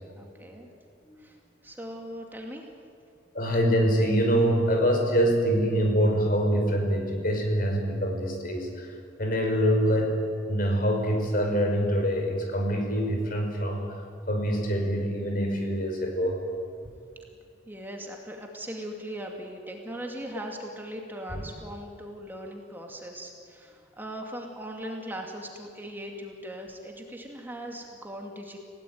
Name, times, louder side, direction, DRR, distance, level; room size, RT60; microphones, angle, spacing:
voice 1, 0.2-0.7 1.2-1.4 1.6-2.7 17.7-28.6, equal, 10° right, 1 dB, 2.3 m, -39 dB
voice 2, 3.3-8.9 9.2-10.2 10.5-13.8 14.3-16.4 21.3-21.4, equal, 50° left, 2 dB, 5.6 m, -25 dB
29.0 x 17.5 x 9.3 m, 2.4 s
head